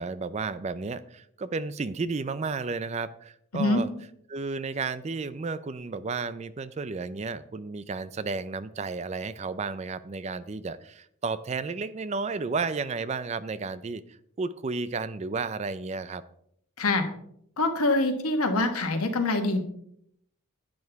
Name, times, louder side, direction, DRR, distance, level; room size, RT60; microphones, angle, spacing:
voice 1, 0.0-3.9 4.3-16.2, right 4 dB, 30° right, 15 dB, 0.4 m, -32 dB
voice 2, 17.6-19.6, left 2 dB, 85° left, 6 dB, 1.5 m, -24 dB
11.0 x 8.6 x 3.5 m, 0.69 s
head